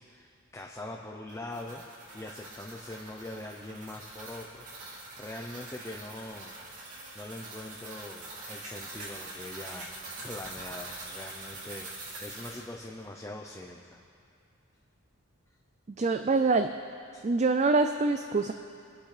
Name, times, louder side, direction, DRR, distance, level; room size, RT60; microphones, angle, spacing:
voice 1, 0.0-1.8 2.1-6.5 7.1-9.9 10.2-14.0 17.1-17.3, left 1 dB, 15° left, 0 dB, 0.6 m, -43 dB
sound 1, 1.3-12.6, right 2 dB, 85° right, 2.7 m, -44 dB
voice 2, 15.9-16.7 17.2-18.5, right 3 dB, 30° right, 7 dB, 0.3 m, -25 dB
24.5 x 10.5 x 3.3 m, 2.5 s
head